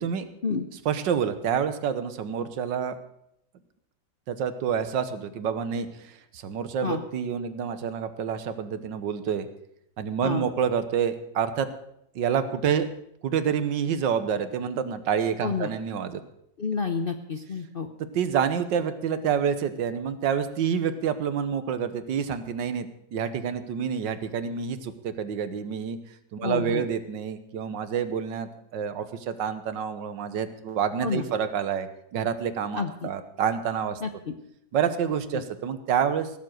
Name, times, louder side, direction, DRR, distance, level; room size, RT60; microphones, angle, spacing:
voice 1, 0.8-3.0 4.3-9.5 10.0-11.7 12.1-12.9 13.2-16.2 18.1-26.0 26.3-34.0 34.7-36.3, right 7 dB, 80° right, 11 dB, 1.7 m, -28 dB
voice 2, 16.6-17.9 26.4-26.8 31.0-31.2 32.8-33.1 34.0-34.3 35.3-35.4, left 5 dB, 50° left, 7 dB, 0.7 m, -29 dB
17.0 x 7.4 x 7.7 m, 0.76 s
omnidirectional pair, 1.9 m